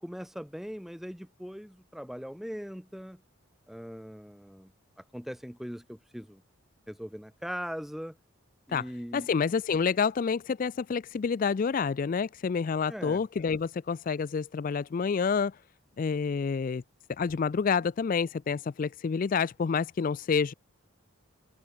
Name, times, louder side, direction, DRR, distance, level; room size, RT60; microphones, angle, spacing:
voice 1, 0.0-3.2 3.7-4.7 5.0-6.4 6.9-8.2 8.7-9.3 12.9-13.2, equal, ahead, 0.8 m, -40 dB
voice 2, 9.1-15.5 16.0-16.8 17.2-20.5, left 5 dB, 40° left, 0.3 m, -28 dB
head